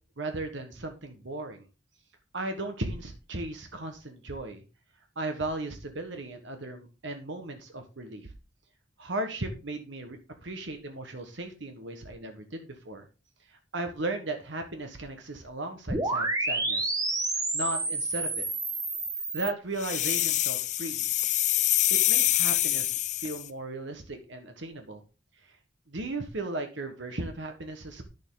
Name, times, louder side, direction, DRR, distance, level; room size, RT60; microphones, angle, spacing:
voice 1, 0.2-1.7 2.3-4.6 5.2-8.3 9.0-13.1 13.5-16.9 17.5-18.4 19.3-21.1 21.5-25.0 25.4-25.6 25.9-28.0, right 2 dB, 65° right, 5 dB, 1.4 m, -36 dB
sound 1, 15.9-19.5, right 2 dB, 15° right, 1.2 m, -29 dB
sound 2, 19.8-23.5, left 14 dB, 35° left, 0.4 m, -26 dB
9.1 x 6.9 x 3.8 m, 0.31 s
head